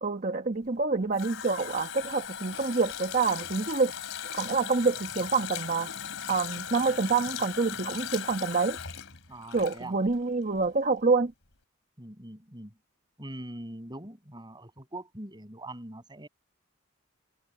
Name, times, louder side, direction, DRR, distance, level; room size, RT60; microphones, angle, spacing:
voice 1, 0.0-3.9 4.3-5.9 6.3-8.8 9.5-11.3, right 4 dB, 40° right, 1.3 m, -27 dB
Water tap faucet, 0.7-10.3 10.6-10.7, left 9 dB, 70° left, 2.9 m, -38 dB
voice 2, 9.3-10.0 12.0-12.7 13.2-16.3, right 1 dB, 20° right, 6.8 m, -42 dB
head